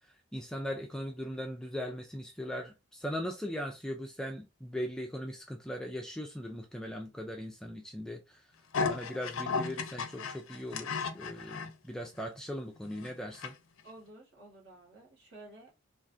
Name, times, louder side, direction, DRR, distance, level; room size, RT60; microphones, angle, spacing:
voice 1, 0.3-8.4 8.9-13.5, equal, 5° left, 0.4 m, -39 dB
sound 1, 8.7-11.7 12.2-12.3 12.8-13.5 13.8-13.9, left 5 dB, 85° left, 0.5 m, -35 dB
voice 2, 13.8-15.7, right 2 dB, 60° right, 1.7 m, -52 dB
3.5 x 2.4 x 2.6 m
head